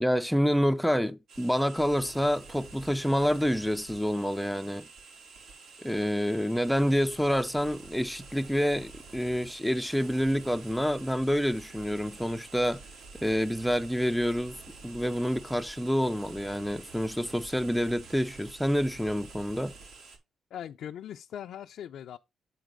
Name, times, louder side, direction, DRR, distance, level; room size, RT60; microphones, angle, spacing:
voice 1, 0.0-4.9 5.8-12.8 13.2-14.6 14.8-19.7, equal, ahead, 0.5 m, -27 dB
sound 1, 1.3-20.2, right 4 dB, 75° right, 4.0 m, -49 dB
voice 2, 20.5-22.2, left 10 dB, 70° left, 0.5 m, -40 dB
9.1 x 3.9 x 5.2 m
cardioid pair, 90°, 0 cm